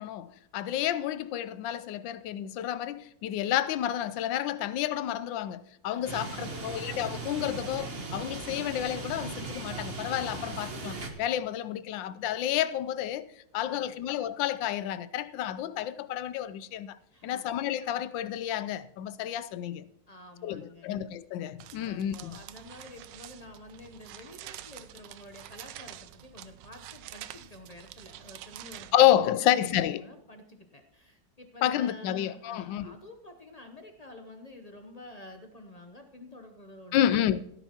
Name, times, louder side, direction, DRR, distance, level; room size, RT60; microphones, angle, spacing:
voice 1, 0.0-13.3 13.5-17.0 17.2-19.8 20.4-22.4 28.9-30.0 31.6-33.0 36.9-37.4, left 11 dB, 85° left, 1.3 m, -30 dB
voice 2, 5.9-6.8 13.6-14.0 17.1-17.5 20.1-21.0 21.8-37.2, left 1 dB, 45° left, 0.5 m, -49 dB
sound 1, 6.0-11.1, right 3 dB, 35° right, 1.3 m, -38 dB
sound 2, 21.6-28.9, right 12 dB, 75° right, 1.2 m, -47 dB
16.5 x 9.9 x 2.9 m
omnidirectional pair, 2.0 m